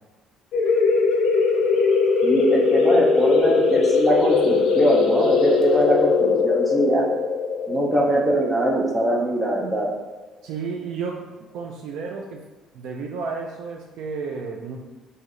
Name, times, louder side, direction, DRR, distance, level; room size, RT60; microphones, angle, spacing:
sound 1, 0.5-9.8, left 4 dB, 60° left, 0.5 m, -20 dB
voice 1, 2.2-7.1 7.7-9.9, right 1 dB, 10° right, -1 dB, 0.5 m, -22 dB
voice 2, 10.4-11.3 11.5-12.5 12.7-14.8, right 5 dB, 65° right, 0 dB, 0.3 m, -32 dB
3.1 x 2.7 x 3.7 m, 1.1 s
cardioid pair, 170°, 0 cm